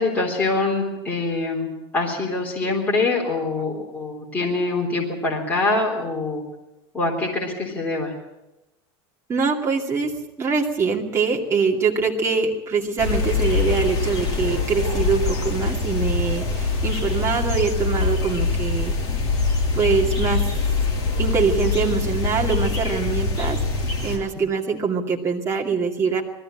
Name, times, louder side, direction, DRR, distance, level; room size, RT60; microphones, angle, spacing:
voice 1, 0.0-6.4 6.9-8.1, left 3 dB, 10° left, -3 dB, 3.6 m, -24 dB
voice 2, 9.3-18.9 19.7-20.4 21.2-23.6 24.0-26.2, right 5 dB, 20° right, 0 dB, 2.4 m, -23 dB
sound 1, 13.0-24.2, left 4 dB, 30° left, 6.4 m, -24 dB
20.5 x 14.5 x 9.0 m, 0.95 s
supercardioid pair, 160°, 14 cm